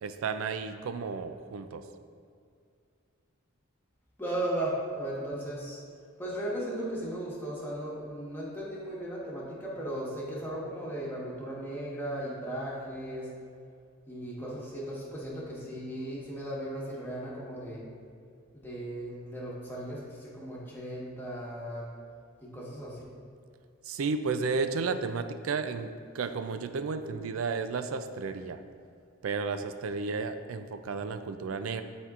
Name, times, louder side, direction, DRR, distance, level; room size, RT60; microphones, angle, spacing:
voice 1, 0.0-1.8 23.9-28.6 29.2-31.8, right 4 dB, 80° right, 9 dB, 0.4 m, -33 dB
voice 2, 4.2-5.8 6.2-13.3 14.1-17.8 18.5-21.9 22.4-23.0, right 1 dB, 10° left, -5 dB, 1.3 m, -36 dB
11.0 x 4.4 x 2.5 m, 2.3 s
head